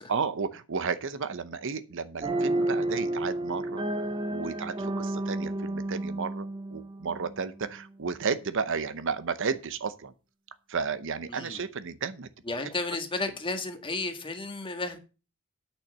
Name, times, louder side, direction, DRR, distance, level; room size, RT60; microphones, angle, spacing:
voice 1, 0.1-3.8 4.3-10.1 10.7-12.3, right 5 dB, 60° right, 0.8 m, -33 dB
sound 1, 2.2-7.7, right 1 dB, 25° right, 0.8 m, -31 dB
voice 2, 11.3-11.7 12.4-15.0, left 3 dB, 25° left, 1.7 m, -33 dB
8.9 x 6.5 x 6.7 m
head